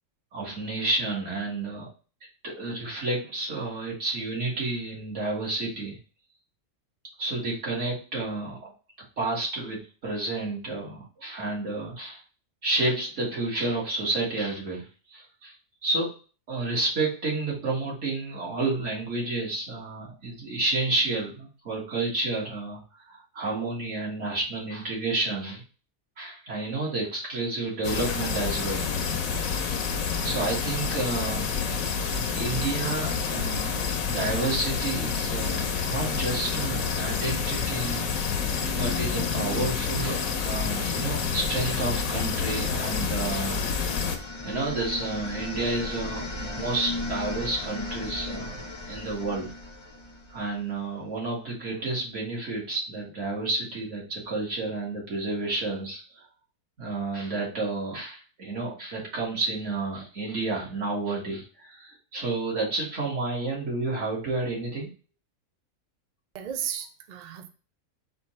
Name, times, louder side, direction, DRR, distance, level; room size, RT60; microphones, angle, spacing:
voice 1, 0.3-1.9 2.4-6.0 7.2-8.7 9.2-12.2 12.6-14.8 15.1-15.5 15.8-16.1 16.5-22.8 23.1-25.6 26.2-28.8 30.1-31.5 32.3-38.1 38.7-43.6 44.4-48.6 48.9-49.5 50.3-56.3 56.8-64.9, right 2 dB, 55° right, -4 dB, 2.0 m, -30 dB
sound 1, 27.8-44.2, left 6 dB, 70° left, 1.1 m, -28 dB
sound 2, 42.8-50.7, left 2 dB, 35° left, 0.5 m, -36 dB
voice 2, 66.3-67.5, right 9 dB, 75° right, 5 dB, 0.4 m, -34 dB
4.4 x 2.6 x 4.2 m, 0.35 s
omnidirectional pair, 1.6 m